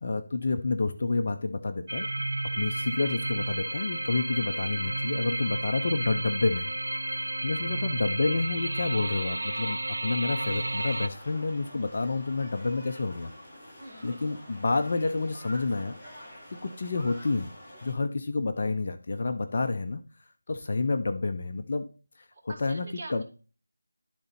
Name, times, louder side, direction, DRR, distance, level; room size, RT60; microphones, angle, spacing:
voice 1, 0.0-2.1 2.5-6.7 7.4-13.3 14.0-16.0 16.6-17.5 17.8-20.0 20.5-21.9 22.4-23.2, left 3 dB, 45° left, 7 dB, 0.6 m, -29 dB
sound 1, 1.9-11.1, right 1 dB, 85° right, 0.7 m, -32 dB
sound 2, 10.4-17.9, equal, 15° left, 1.6 m, -47 dB
voice 2, 13.8-14.4 22.3-23.2, right 2 dB, 25° right, -4 dB, 2.1 m, -45 dB
11.5 x 4.0 x 4.1 m, 0.37 s
figure-of-eight pair, 170°, 0 cm